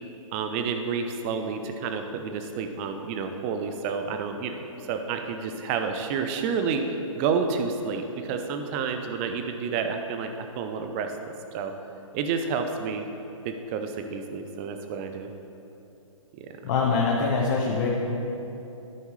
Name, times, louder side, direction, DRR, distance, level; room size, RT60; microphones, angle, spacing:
voice 1, 0.3-11.7 12.1-13.1 13.4-15.3 16.3-16.5, right 5 dB, 25° right, 6 dB, 0.5 m, -30 dB
voice 2, 16.6-17.9, left 4 dB, 35° left, -3 dB, 1.1 m, -24 dB
13.5 x 5.3 x 3.2 m, 2.9 s
hypercardioid pair, 145°, 17 cm